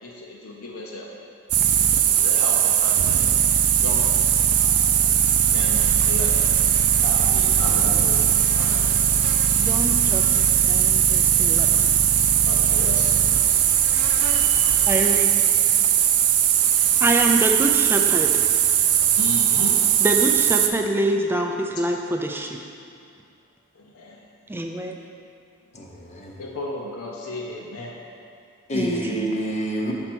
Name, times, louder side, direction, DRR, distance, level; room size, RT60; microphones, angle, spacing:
voice 1, 0.0-1.1 2.1-3.3 3.8-4.1 5.5-6.6 7.0-9.7 12.4-13.4 19.1-19.8 23.8-24.2 26.4-28.0, left 2 dB, 70° left, -2 dB, 0.7 m, -35 dB
sound 1, 1.5-20.7, right 9 dB, 85° right, 0.5 m, -19 dB
sound 2, 5.7-14.9, right 1 dB, 55° right, 0.8 m, -37 dB
voice 2, 9.5-11.7 14.9-15.3 17.0-18.4 20.0-22.6 24.5-25.0 28.7-29.3, right 1 dB, 10° right, 2 dB, 0.4 m, -25 dB
voice 3, 25.7-26.4 28.7-29.9, equal, 30° left, -1 dB, 0.7 m, -27 dB
5.6 x 4.4 x 6.0 m, 2.5 s
head